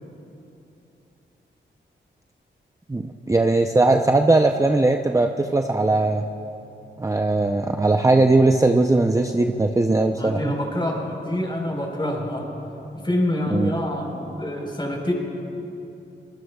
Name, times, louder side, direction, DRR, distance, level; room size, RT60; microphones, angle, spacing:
voice 1, 2.9-6.2 7.0-10.4 13.5-13.7, right 2 dB, 15° right, 4 dB, 0.6 m, -19 dB
voice 2, 10.2-12.5 13.0-15.1, left 1 dB, 25° left, 0 dB, 4.3 m, -26 dB
24.5 x 19.5 x 2.4 m, 2.9 s
cardioid pair, 55°, 20 cm